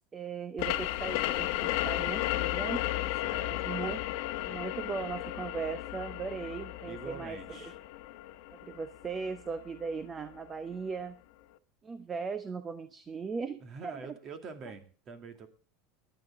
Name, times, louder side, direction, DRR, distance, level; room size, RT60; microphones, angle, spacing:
voice 1, 0.1-2.9 3.5-4.0 4.4-7.6 8.6-11.2 11.8-13.9, right 5 dB, 20° right, 11 dB, 0.8 m, -38 dB
sound 1, 0.6-9.9, left 16 dB, 65° left, 1.0 m, -34 dB
voice 2, 3.2-3.8 6.9-7.8 13.6-15.5, right 5 dB, 35° right, 8 dB, 2.3 m, -45 dB
18.0 x 11.0 x 3.6 m, 0.39 s
supercardioid pair, 145°, 0 cm